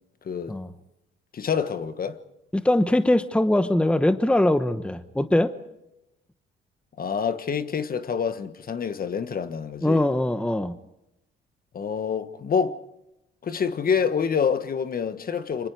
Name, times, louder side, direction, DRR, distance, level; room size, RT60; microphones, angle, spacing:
voice 1, 1.3-2.2 7.0-10.0 11.7-12.8 13.4-15.7, left 6 dB, 45° left, 1.4 m, -27 dB
voice 2, 2.5-5.5 9.8-10.7, left 1 dB, 5° left, 1.0 m, -22 dB
27.0 x 24.5 x 4.8 m
cardioid pair, 90°, 20 cm